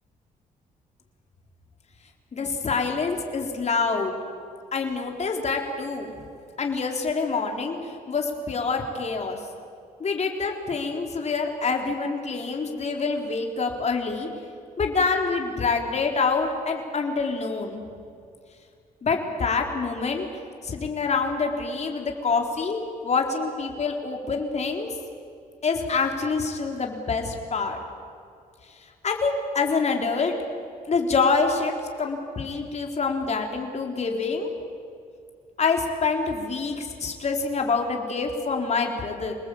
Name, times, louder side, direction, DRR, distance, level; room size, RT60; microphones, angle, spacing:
voice 1, 2.3-4.2 4.7-6.1 6.6-9.4 10.0-14.3 14.8-17.8 19.0-20.3 20.6-24.9 25.6-27.8 29.0-30.3 30.9-34.5 35.6-39.3, left 4 dB, 45° left, 2 dB, 4.2 m, -26 dB
28.5 x 19.5 x 8.7 m, 2.4 s
cardioid pair, 95°, 16 cm